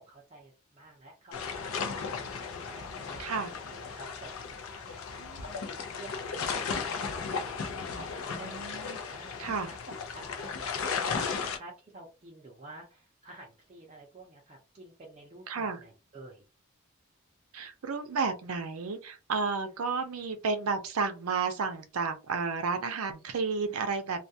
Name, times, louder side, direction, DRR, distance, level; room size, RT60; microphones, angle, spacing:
voice 1, 0.0-9.8 10.1-16.4 19.8-19.9, right 2 dB, 30° right, 0.5 m, -51 dB
sound 1, 1.3-11.6, left 5 dB, 70° left, 0.5 m, -35 dB
voice 2, 3.2-3.5 5.2-5.6 8.4-9.0 9.4-9.7 15.5-15.8 17.5-24.2, right 4 dB, 85° right, 0.5 m, -32 dB
2.3 x 2.2 x 2.6 m
head